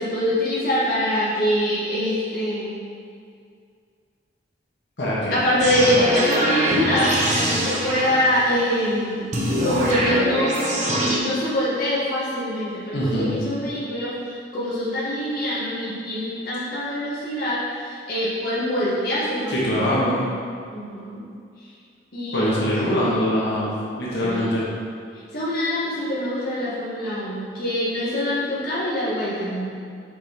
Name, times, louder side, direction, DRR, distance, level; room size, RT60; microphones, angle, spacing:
voice 1, 0.0-2.8 5.3-9.3 9.6-20.0 20.7-21.3 22.1-23.0 24.2-24.5 25.3-29.7, equal, 55° left, -9 dB, 1.5 m, -24 dB
voice 2, 5.0-5.3 12.9-13.4 19.5-20.2 22.3-23.7 24.0-24.6, equal, 70° left, -6 dB, 1.6 m, -23 dB
sound 1, 5.6-8.6 9.3-11.2, equal, 40° right, 1.0 m, -23 dB
6.1 x 5.2 x 4.4 m, 2.2 s
head